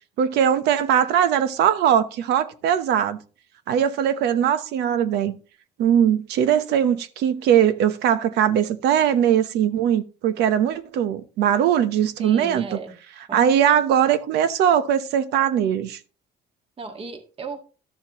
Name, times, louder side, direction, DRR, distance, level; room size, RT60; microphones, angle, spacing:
voice 1, 0.2-3.2 3.7-5.4 5.8-12.7 13.3-16.0, right 9 dB, 80° right, 0.9 m, -20 dB
voice 2, 12.2-13.0 13.3-13.7 16.8-17.6, right 4 dB, 35° right, 1.8 m, -36 dB
12.5 x 7.1 x 3.0 m
cardioid pair, 110°, 17 cm